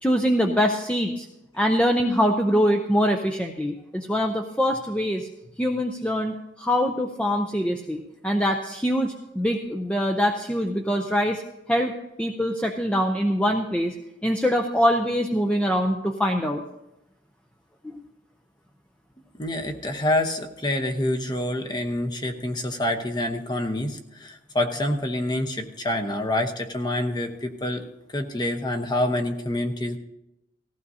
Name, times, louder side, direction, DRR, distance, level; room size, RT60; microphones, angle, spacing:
voice 1, 0.0-1.3 1.5-5.3 5.6-11.4 11.7-11.9 12.2-13.9 14.2-16.6, equal, 5° left, 3 dB, 0.5 m, -23 dB
voice 2, 19.4-27.9 28.1-30.0, left 1 dB, 20° left, 4 dB, 0.9 m, -27 dB
18.5 x 15.0 x 2.8 m, 0.90 s
head